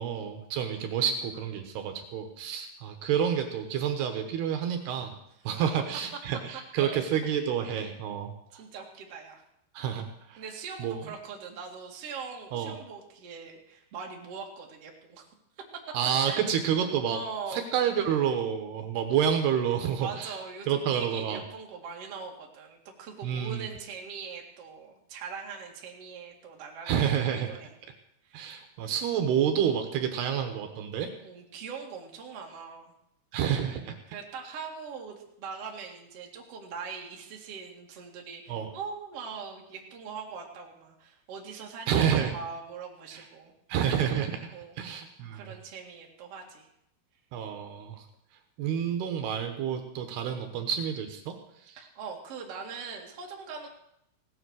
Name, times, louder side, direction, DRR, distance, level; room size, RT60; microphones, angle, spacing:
voice 1, 0.0-5.1 5.4-8.6 9.7-10.4 10.8-11.0 12.5-12.7 15.9-17.2 17.5-20.4 20.7-21.4 23.2-23.7 26.9-27.5 28.3-31.1 33.3-33.9 38.5-38.7 41.9-42.3 43.1-43.2 43.7-45.5 47.3-48.0 48.6-51.4 51.7-51.8, right 8 dB, 75° right, 5 dB, 3.2 m, -29 dB
voice 2, 8.5-9.4 10.4-15.3 16.3-16.4 17.0-17.6 20.0-27.0 27.5-27.7 28.2-28.5 31.2-32.9 34.1-43.5 44.5-44.8 45.3-46.7 51.8-53.7, right 5 dB, 45° right, 0 dB, 2.5 m, -41 dB
17.0 x 10.0 x 6.4 m, 0.78 s
omnidirectional pair, 4.9 m